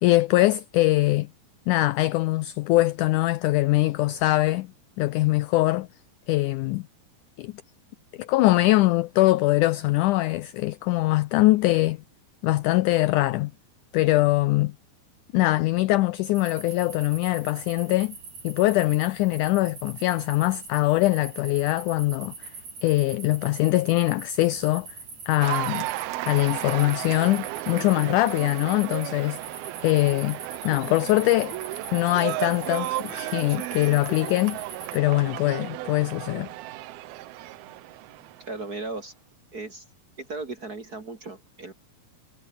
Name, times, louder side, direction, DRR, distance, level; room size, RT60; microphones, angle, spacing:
voice 1, 0.0-1.3 1.7-4.7 5.0-5.9 6.3-6.9 7.4-7.5 8.2-12.0 12.4-13.5 13.9-14.7 15.3-18.2 18.4-22.5 22.8-24.9 25.3-25.9 26.3-29.4 29.8-30.4 30.6-31.5 31.9-34.6 34.9-36.5, left 18 dB, 90° left, 1.7 m, -22 dB
sound 1, 16.3-35.0, right 4 dB, 50° right, 7.2 m, -42 dB
Cheering / Applause, 25.4-38.8, right 17 dB, 90° right, 2.8 m, -34 dB
voice 2, 38.5-39.1 39.5-39.8 40.2-41.7, right 3 dB, 30° right, 1.9 m, -36 dB
omnidirectional pair, 4.2 m